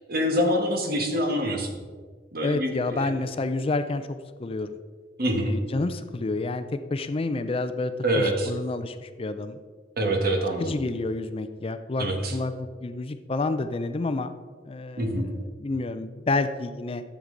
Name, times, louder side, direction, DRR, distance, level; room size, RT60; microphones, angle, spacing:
voice 1, 0.1-1.7 2.3-3.1 5.2-5.5 8.0-8.5 10.0-10.7 12.0-12.4 15.0-15.3, equal, 55° right, 4 dB, 1.4 m, -25 dB
voice 2, 2.4-4.1 4.4-4.7 5.5-9.6 10.6-14.3 14.6-15.3 15.6-17.0, left 2 dB, 30° left, 10 dB, 0.4 m, -29 dB
11.5 x 7.3 x 3.9 m, 1.5 s
head